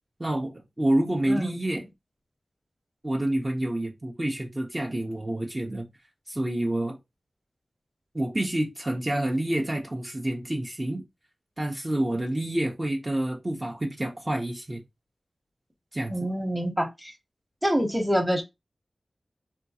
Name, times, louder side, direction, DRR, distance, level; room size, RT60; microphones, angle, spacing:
voice 1, 0.2-1.8 3.0-5.8 6.3-7.0 8.1-11.0 11.6-14.8 15.9-16.1, right 1 dB, 30° right, 0.7 m, -28 dB
voice 2, 16.1-17.1 17.6-18.4, equal, 5° right, 1.0 m, -26 dB
3.6 x 2.3 x 2.8 m
cardioid pair, 45°, 0 cm